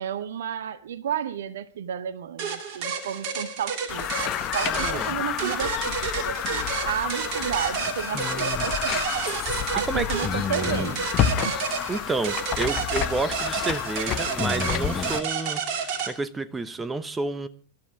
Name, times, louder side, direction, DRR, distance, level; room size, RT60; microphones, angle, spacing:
voice 1, 0.0-9.3 9.7-11.6, right 9 dB, 60° right, 0.8 m, -32 dB
sound 1, 2.4-16.1, right 6 dB, 45° right, 2.5 m, -30 dB
sound 2, 3.9-15.2, left 11 dB, 35° left, 1.1 m, -30 dB
voice 2, 4.6-5.1 9.9-10.1 11.9-17.5, right 3 dB, 15° right, 1.0 m, -30 dB
sound 3, 8.1-8.7 10.2-11.1 12.2-12.3 12.6-12.7 14.4-15.3 16.5-16.8, left 4 dB, 15° left, 0.9 m, -32 dB
25.5 x 12.5 x 3.5 m
figure-of-eight pair, 90°, 0 cm